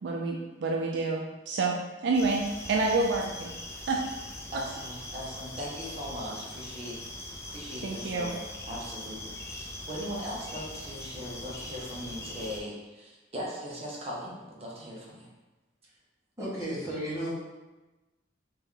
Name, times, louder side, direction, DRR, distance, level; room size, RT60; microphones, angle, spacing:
voice 1, 0.0-1.8 2.0-4.0 4.5-4.6 7.8-8.3, right 3 dB, 65° right, 0 dB, 0.4 m, -28 dB
sound 1, 2.1-12.6, left 1 dB, 15° left, 0.4 m, -41 dB
voice 2, 4.5-8.4 8.6-15.3, equal, 35° right, -4 dB, 0.9 m, -39 dB
voice 3, 16.4-17.3, right 1 dB, 15° right, -9 dB, 1.3 m, -33 dB
3.4 x 2.9 x 3.7 m, 1.1 s
head